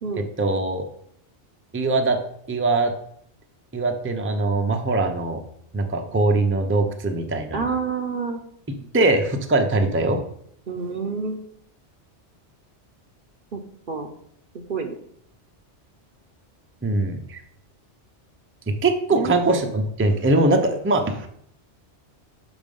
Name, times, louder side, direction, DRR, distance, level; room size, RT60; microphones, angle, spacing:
voice 1, 0.4-0.8 1.7-2.2 2.5-2.9 3.7-5.4 5.7-7.6 8.9-10.2 16.8-17.4 18.8-21.3, right 2 dB, 15° right, 4 dB, 0.5 m, -21 dB
voice 2, 7.5-8.4 10.7-11.4 13.5-13.6 13.9-14.1 14.5-14.9 19.1-19.6, right 5 dB, 50° right, 5 dB, 0.8 m, -28 dB
6.3 x 5.1 x 5.3 m, 0.68 s
omnidirectional pair, 1.2 m